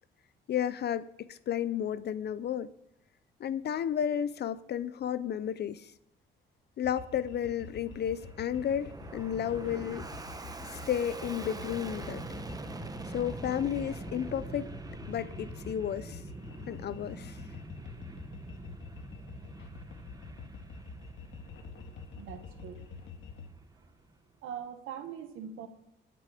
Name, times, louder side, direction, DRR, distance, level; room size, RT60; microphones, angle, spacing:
voice 1, 0.5-2.7 3.4-5.9 6.8-10.1 10.7-12.2 13.1-14.7 15.1-16.2 16.7-17.4, left 9 dB, 55° left, 0.6 m, -32 dB
sound 1, 6.8-23.5, left 4 dB, 75° left, 1.8 m, -47 dB
Fixed-wing aircraft airplane, 7.6-24.2, right 2 dB, 20° right, 1.1 m, -45 dB
voice 2, 22.1-22.9 24.4-25.7, right 8 dB, 90° right, 1.4 m, -42 dB
19.5 x 6.8 x 5.0 m
cardioid pair, 90°, 20 cm